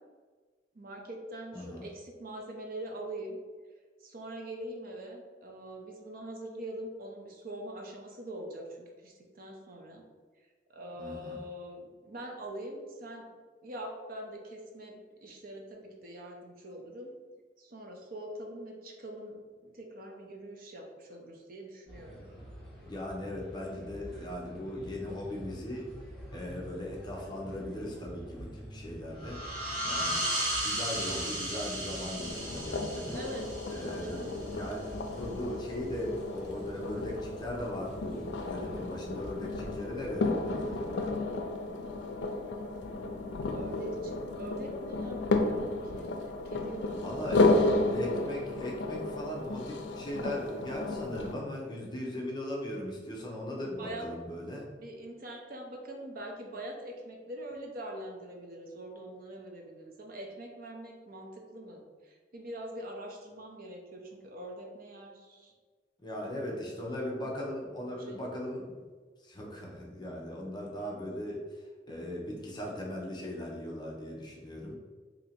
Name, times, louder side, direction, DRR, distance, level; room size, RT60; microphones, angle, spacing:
voice 1, 0.7-3.4 4.0-10.0 10.7-13.3 13.6-17.1 17.6-22.3 33.1-33.5 34.0-34.3 42.5-47.3 47.6-48.0 53.6-54.1 54.7-65.5 66.2-66.9 67.9-68.6 71.9-72.0, right 1 dB, 55° right, 1 dB, 0.6 m, -44 dB
voice 2, 1.5-1.9 11.0-11.4 22.3-22.4 22.9-25.9 26.3-29.4 29.8-30.3 30.6-33.2 33.7-41.2 47.0-47.5 47.9-54.7 66.0-68.8 69.2-71.4 71.9-74.8, left 1 dB, 25° left, -2 dB, 0.6 m, -38 dB
sound 1, 21.9-41.1, equal, ahead, 1.4 m, -48 dB
sound 2, 29.2-34.6, right 1 dB, 25° right, 1.5 m, -35 dB
sound 3, 32.1-51.3, left 2 dB, 85° left, 0.4 m, -33 dB
2.8 x 2.7 x 4.2 m, 1.5 s
head